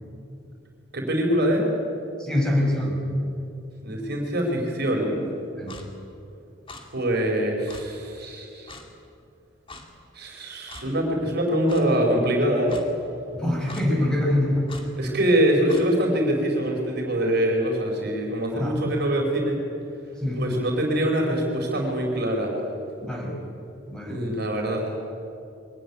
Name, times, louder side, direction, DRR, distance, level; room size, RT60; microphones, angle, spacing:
voice 1, 0.9-1.6 3.8-5.2 6.9-8.7 10.1-12.8 15.0-19.6 20.3-22.5 24.1-24.9, right 1 dB, 50° right, 0 dB, 4.3 m, -24 dB
voice 2, 2.2-3.0 5.6-5.8 13.3-14.7 18.5-18.8 20.2-20.4 23.0-23.4 23.9-24.2, left 1 dB, 5° left, -2 dB, 5.7 m, -25 dB
Clock, 5.7-5.9 6.7-6.8 7.7-7.8 8.7-8.9 9.7-9.8 10.7-10.9 11.7-11.8 12.7-12.8 13.7-13.9 14.7-14.9 15.7-15.9, left 2 dB, 25° left, 2.4 m, -41 dB
23.5 x 18.0 x 9.8 m, 2.7 s
head